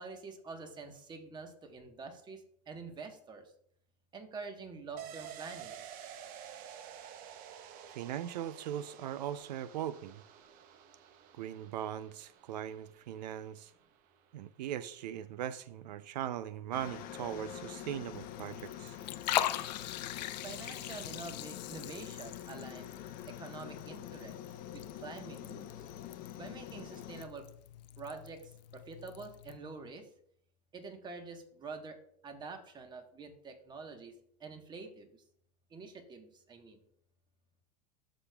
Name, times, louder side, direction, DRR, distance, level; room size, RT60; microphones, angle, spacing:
voice 1, 0.0-3.5 4.1-5.8 20.4-22.9 23.3-24.3 24.7-25.7 26.3-27.5 28.0-30.1 30.7-32.0 32.2-34.1 34.4-35.2 35.7-36.8, right 4 dB, 20° right, 5 dB, 1.1 m, -47 dB
sound 1, 5.0-14.4 14.7-14.8, right 9 dB, 40° right, 0.7 m, -51 dB
voice 2, 7.9-10.2 11.3-13.7 14.3-19.0, right 10 dB, 85° right, 14 dB, 0.5 m, -39 dB
Aircraft, 16.7-27.2, left 11 dB, 45° left, 0.7 m, -46 dB
Liquid, 18.1-29.6, left 13 dB, 85° left, 0.5 m, -41 dB
13.0 x 5.0 x 2.3 m, 0.66 s
supercardioid pair, 130°, 21 cm